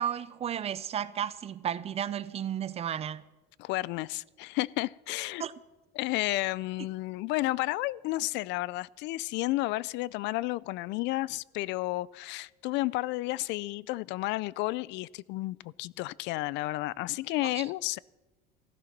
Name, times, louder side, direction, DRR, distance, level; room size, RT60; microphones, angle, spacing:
voice 1, 0.0-3.2 5.4-5.5 17.6-17.7, right 9 dB, 30° right, 0.6 m, -33 dB
voice 2, 3.6-5.4 5.9-18.0, left 19 dB, 60° left, 0.4 m, -32 dB
15.5 x 12.5 x 5.9 m
cardioid pair, 130°, 20 cm